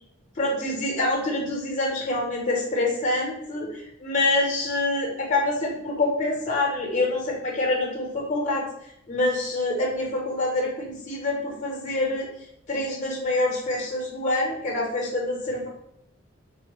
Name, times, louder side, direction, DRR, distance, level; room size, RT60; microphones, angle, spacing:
voice 1, 0.4-8.7 9.1-12.3 12.7-15.7, left 2 dB, 35° left, -1 dB, 0.7 m, -26 dB
3.3 x 2.0 x 2.9 m, 0.74 s
head